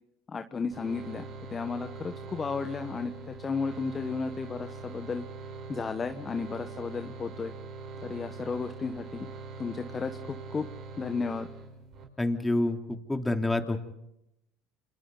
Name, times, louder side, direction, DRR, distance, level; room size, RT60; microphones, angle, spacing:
voice 1, 0.3-5.2 5.7-7.5 8.0-9.3 9.6-10.7 11.0-11.5, left 5 dB, 30° left, 7 dB, 1.3 m, -34 dB
sound 1, 0.7-12.0, right 4 dB, 55° right, 5.7 m, -43 dB
voice 2, 12.2-13.8, left 2 dB, 10° left, 5 dB, 3.0 m, -28 dB
29.0 x 26.5 x 4.0 m, 0.83 s
hypercardioid pair, 80°, 0 cm